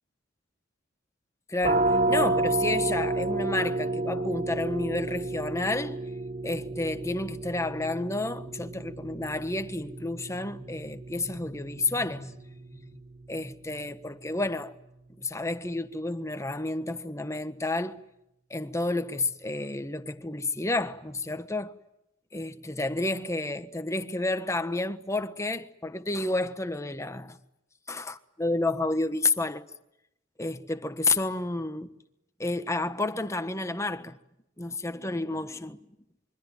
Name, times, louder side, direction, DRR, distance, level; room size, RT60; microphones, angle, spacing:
voice 1, 1.5-6.0 6.4-12.4 12.7-13.0 13.3-14.7 15.2-18.0 18.5-21.7 22.3-27.4 27.9-29.6 30.4-31.9 32.4-34.2 34.6-35.8, left 2 dB, 15° left, 1.4 m, -30 dB
sound 1, 1.6-13.1, right 2 dB, 40° right, 1.2 m, -31 dB
26.5 x 24.0 x 9.1 m
head